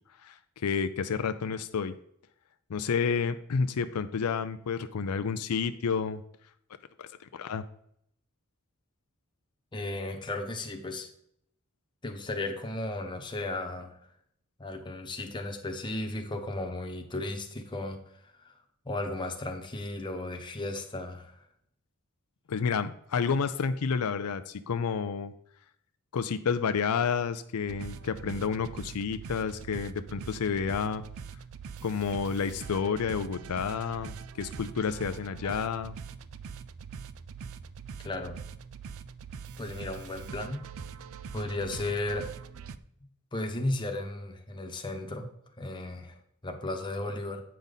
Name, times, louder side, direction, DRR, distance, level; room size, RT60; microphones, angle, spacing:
voice 1, 0.2-1.9 2.7-6.2 7.0-7.1 7.3-7.6 22.5-25.3 26.1-31.1 31.8-35.9, left 6 dB, 80° left, 10 dB, 0.5 m, -30 dB
voice 2, 9.7-11.1 12.0-14.0 14.6-18.6 18.8-21.5 35.4-35.6 38.0-38.4 39.6-40.7 41.3-42.3 43.3-45.3 45.6-47.4, left 2 dB, 20° left, 3 dB, 1.1 m, -35 dB
sound 1, 27.7-42.8, right 6 dB, 65° right, 0.4 m, -43 dB
8.6 x 5.2 x 4.0 m, 0.71 s
head